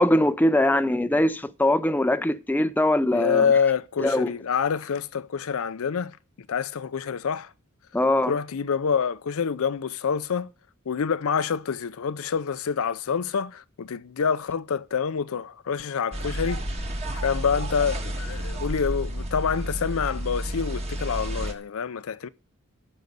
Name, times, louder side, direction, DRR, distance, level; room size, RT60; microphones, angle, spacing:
voice 1, 0.0-3.5 4.0-4.3 7.9-8.3, left 1 dB, 10° left, 0.4 m, -22 dB
voice 2, 3.1-6.2 6.5-7.5 8.3-10.5 10.9-16.6 17.1-22.3, left 6 dB, 70° left, 0.5 m, -27 dB
sound 1, 16.1-21.5, equal, 30° right, 1.5 m, -31 dB
12.0 x 5.3 x 8.1 m
head